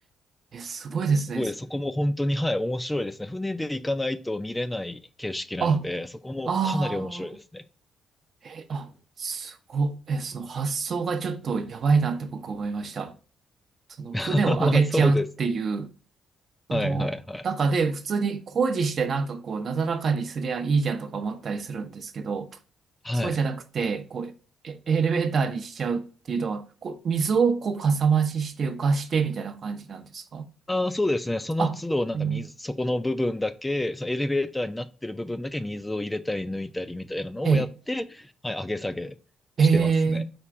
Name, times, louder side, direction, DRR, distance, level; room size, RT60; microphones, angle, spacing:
voice 1, 0.5-1.4 5.6-5.8 6.5-7.3 8.4-8.9 9.2-13.1 14.0-15.9 16.7-17.1 17.4-22.5 23.2-24.3 24.6-30.5 31.6-31.8 32.1-32.4 37.4-37.6 39.6-40.2, right 5 dB, 50° right, 0.7 m, -26 dB
voice 2, 1.3-7.6 14.1-15.3 16.7-17.5 23.0-23.4 30.7-39.1 39.6-40.2, left 1 dB, 10° left, 0.4 m, -29 dB
4.3 x 2.5 x 4.6 m
cardioid pair, 90°, 0 cm